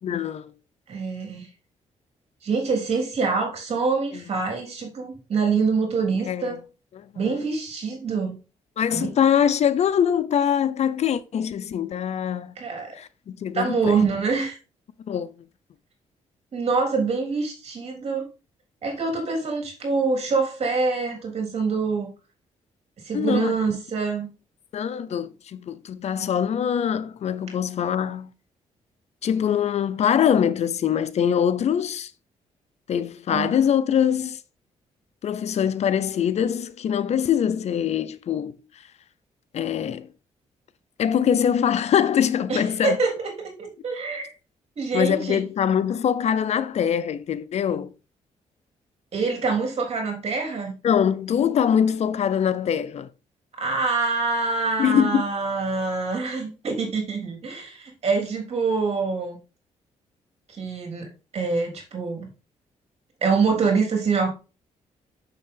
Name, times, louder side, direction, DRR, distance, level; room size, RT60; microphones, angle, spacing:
voice 1, 0.0-0.5 6.3-6.5 6.9-7.3 8.8-12.5 12.9-13.9 15.1-15.3 23.1-23.6 24.7-28.3 29.2-32.1 32.9-34.4 35.2-38.6 39.5-40.1 41.0-43.0 44.9-47.9 50.8-53.1 54.8-55.2, left 8 dB, 60° left, 0.7 m, -23 dB
voice 2, 0.9-1.5 2.4-6.6 7.2-8.4 8.9-9.1 12.6-13.0 13.5-14.6 16.5-18.3 18.8-22.1 23.0-24.3 33.3-33.5 42.5-43.3 43.6-44.3 44.8-45.4 49.1-50.8 53.6-59.4 60.5-62.3 63.2-64.3, right 4 dB, 55° right, 3.7 m, -25 dB
6.8 x 6.7 x 3.8 m
cardioid pair, 90°, 13 cm